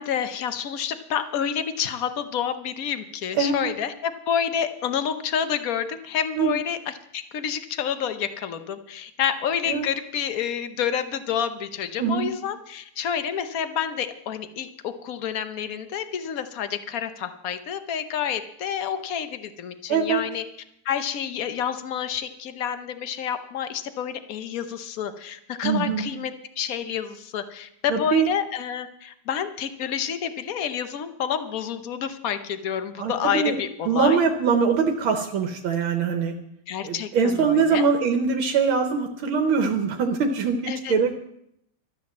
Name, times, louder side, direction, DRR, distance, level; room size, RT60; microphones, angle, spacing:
voice 1, 0.0-20.4 20.8-34.2 36.7-37.8 40.7-40.9, left 8 dB, 55° left, 10 dB, 1.2 m, -29 dB
voice 2, 3.4-3.7 6.4-6.5 9.7-9.9 12.0-12.3 19.9-20.2 25.6-26.0 27.9-28.3 33.0-33.6 33.9-36.3 36.8-41.2, right 5 dB, 80° right, 4 dB, 1.9 m, -23 dB
13.0 x 9.4 x 7.3 m, 0.75 s
omnidirectional pair, 2.2 m